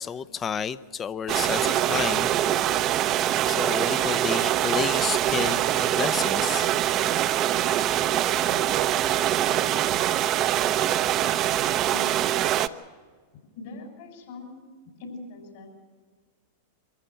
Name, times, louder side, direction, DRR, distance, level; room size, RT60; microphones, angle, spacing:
voice 1, 0.0-2.3 2.6-2.8 3.5-6.7, left 7 dB, 25° left, 0.7 m, -31 dB
sound 1, 1.3-12.7, right 12 dB, 40° right, 0.8 m, -24 dB
voice 2, 11.9-12.3 13.5-14.6 15.0-15.7, left 3 dB, 65° left, 6.7 m, -41 dB
24.0 x 14.0 x 9.0 m
hypercardioid pair, 100°, 0 cm